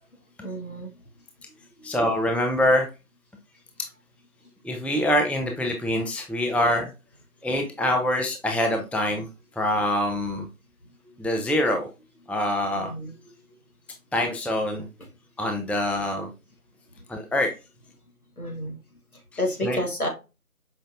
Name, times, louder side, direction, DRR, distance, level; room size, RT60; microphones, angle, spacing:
voice 1, 0.4-0.9 1.8-2.0 12.7-13.1 17.0-17.1 18.4-18.8 19.1-20.1, left 1 dB, 70° left, 2 dB, 1.4 m, -31 dB
voice 2, 1.8-2.9 4.6-6.9 7.4-9.3 9.6-10.5 11.2-11.9 12.3-12.9 14.1-14.9 15.4-16.3 17.1-17.5 19.6-19.8, left 1 dB, 5° left, 3 dB, 0.4 m, -24 dB
5.0 x 2.4 x 2.5 m, 0.29 s
figure-of-eight pair, 180°, 44 cm